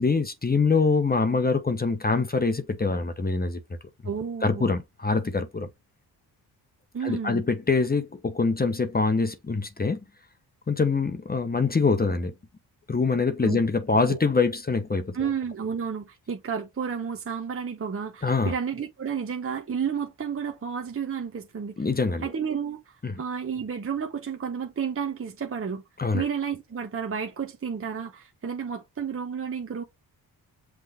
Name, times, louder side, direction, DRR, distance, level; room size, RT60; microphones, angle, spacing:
voice 1, 0.0-3.6 4.4-5.7 7.0-10.0 10.7-12.3 12.9-15.3 18.2-18.5 21.8-22.2 23.0-23.2 26.0-26.2, left 4 dB, 25° left, 0.9 m, -24 dB
voice 2, 4.0-4.7 6.9-7.4 13.4-13.6 13.9-14.2 15.1-21.9 22.2-25.8 26.1-29.8, right 7 dB, 35° right, 0.9 m, -31 dB
5.8 x 2.4 x 3.5 m
cardioid pair, 65°, 40 cm